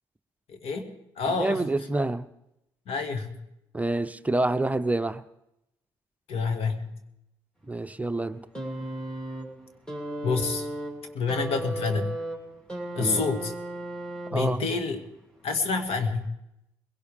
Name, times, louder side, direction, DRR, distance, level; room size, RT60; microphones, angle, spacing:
voice 1, 0.5-0.9 1.2-1.9 2.9-3.3 6.3-7.0 10.2-10.7 11.1-12.1 12.9-13.5 14.3-15.0 15.4-16.2, left 4 dB, 65° left, 6 dB, 2.1 m, -28 dB
voice 2, 1.4-2.3 3.7-5.2 7.7-8.4 13.0-13.2 14.3-14.6, right 2 dB, 15° right, 10 dB, 0.8 m, -27 dB
sound 1, 8.5-14.7 15.8-15.9, right 1 dB, 5° left, 3.1 m, -35 dB
22.0 x 17.0 x 3.6 m, 0.84 s
hypercardioid pair, 55°, 11 cm